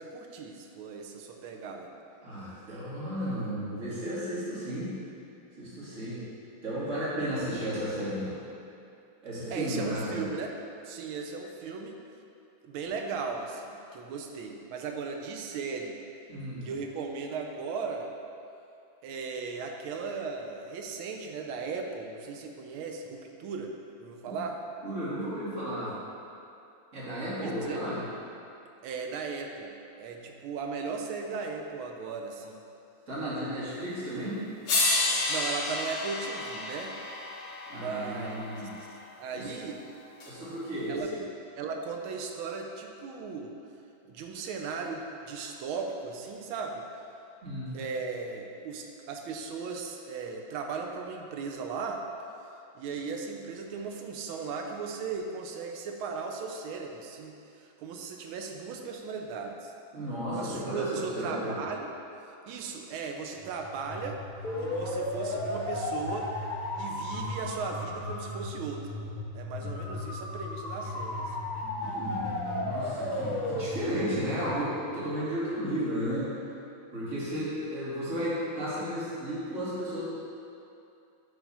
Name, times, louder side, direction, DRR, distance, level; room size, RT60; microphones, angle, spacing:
voice 1, 0.0-1.9 9.5-10.5 10.8-11.9 12.6-16.0 16.6-18.1 19.0-23.7 24.0-24.6 27.4-27.9 28.8-32.6 35.3-36.9 37.7-38.5 39.2-39.8 40.9-41.1 41.6-43.5 44.1-46.8 47.7-52.0 52.7-59.7 60.3-61.9 62.5-64.2 64.6-66.3 66.7-69.0 69.3-71.3, right 5 dB, 85° right, 3 dB, 1.5 m, -37 dB
voice 2, 2.2-4.9 5.6-6.2 6.6-8.3 9.2-10.2 16.3-16.7 24.8-25.9 26.9-28.0 33.1-34.4 37.7-38.7 39.3-39.5 40.3-41.2 47.4-47.8 59.9-61.6 69.6-69.7 71.6-76.3 76.9-80.0, equal, 40° right, -10 dB, 2.1 m, -33 dB
sound 1, 34.1-34.2 34.7-38.9 40.2-40.3, left 2 dB, 75° left, 1.9 m, -31 dB
sound 2, 63.4-75.2, left 1 dB, 50° left, 0.5 m, -35 dB
7.3 x 3.5 x 5.4 m, 2.7 s
omnidirectional pair, 2.2 m